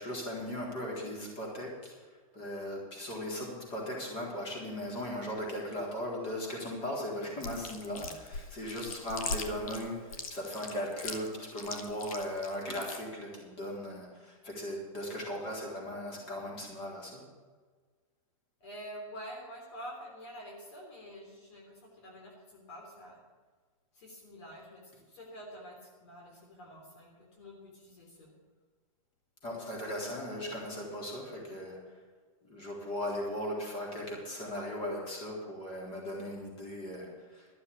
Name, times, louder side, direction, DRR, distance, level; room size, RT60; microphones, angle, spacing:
voice 1, 0.0-1.9 2.3-17.2 29.4-31.8 32.5-37.5, left 1 dB, 30° left, -1 dB, 3.8 m, -38 dB
Chewing mastication, 7.4-13.0, left 4 dB, 75° left, 1.7 m, -40 dB
voice 2, 18.6-23.2 23.9-28.3, equal, 55° left, 0 dB, 3.2 m, -47 dB
13.0 x 7.0 x 8.4 m, 1.5 s
hypercardioid pair, 155°, 18 cm